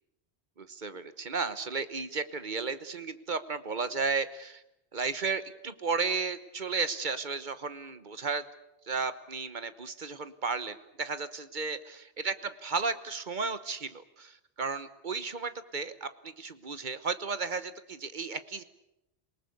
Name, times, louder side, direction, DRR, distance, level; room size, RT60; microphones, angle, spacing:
voice 1, 0.6-4.6 4.9-8.4 8.8-18.6, right 4 dB, 45° right, 12 dB, 1.2 m, -34 dB
27.5 x 19.0 x 8.4 m, 0.89 s
omnidirectional pair, 1.1 m